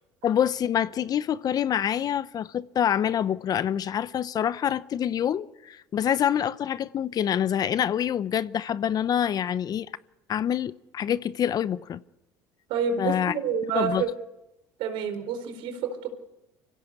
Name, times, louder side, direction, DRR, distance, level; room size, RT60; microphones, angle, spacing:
voice 1, 0.2-9.9 10.3-12.0 13.0-13.3 13.7-14.1, left 9 dB, 45° left, 0.9 m, -26 dB
voice 2, 12.7-14.1 14.8-16.1, right 7 dB, 70° right, 4.4 m, -28 dB
25.0 x 16.5 x 8.5 m
supercardioid pair, 85°, 9 cm